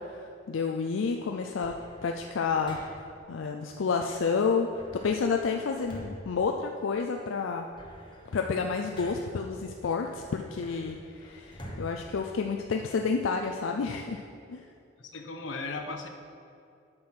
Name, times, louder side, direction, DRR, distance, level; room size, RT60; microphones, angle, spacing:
voice 1, 0.1-1.8 2.0-2.9 3.3-7.7 8.3-14.2 14.5-14.6, left 5 dB, 90° left, 3 dB, 0.4 m, -30 dB
sound 1, 1.6-3.3 4.7-7.2 7.5-9.5 10.0-13.0, equal, 25° left, 1.0 m, -47 dB
voice 2, 15.0-16.1, left 3 dB, 75° left, 5 dB, 0.8 m, -36 dB
7.7 x 6.0 x 5.7 m, 2.5 s
head